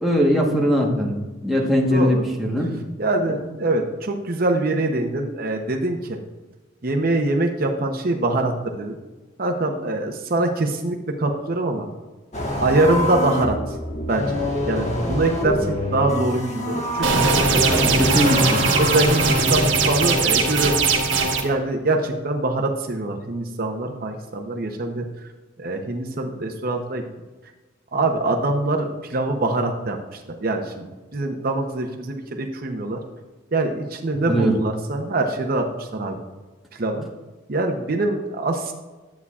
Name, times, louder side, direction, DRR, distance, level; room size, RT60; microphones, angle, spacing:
voice 1, 0.0-2.7 17.7-18.6 34.3-34.6, equal, ahead, -3 dB, 1.2 m, -20 dB
voice 2, 1.9-2.2 3.0-6.2 6.8-9.0 9.4-11.9 12.6-13.8 14.1-18.2 18.8-20.8 21.1-25.0 25.6-27.0 27.9-30.9 31.1-33.0 33.5-36.2 36.7-37.1 37.5-38.7, right 2 dB, 50° right, 3 dB, 0.8 m, -24 dB
sound 1, 12.3-19.7, equal, 35° left, 1.4 m, -26 dB
sound 2, 17.0-21.4, right 4 dB, 75° right, 1.4 m, -20 dB
11.5 x 8.2 x 2.4 m, 1.2 s
head